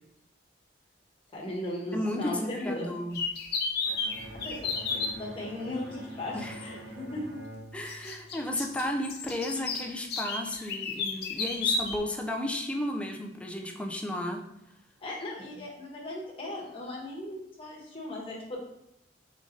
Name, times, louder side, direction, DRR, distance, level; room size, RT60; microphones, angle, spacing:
voice 1, 1.3-2.9 4.4-7.2 8.0-8.2 15.0-18.6, left 1 dB, 30° left, -4 dB, 1.2 m, -37 dB
voice 2, 1.9-3.2 6.3-6.6 6.9-7.0 7.7-14.5 15.6-15.7, left 1 dB, 5° left, 2 dB, 0.4 m, -33 dB
sound 1, 3.1-5.1 6.6-6.7 7.9-12.0, left 4 dB, 60° left, 0.7 m, -32 dB
Bowed string instrument, 3.8-8.8, right 1 dB, 60° right, 0.6 m, -46 dB
3.8 x 3.2 x 3.8 m, 0.80 s
head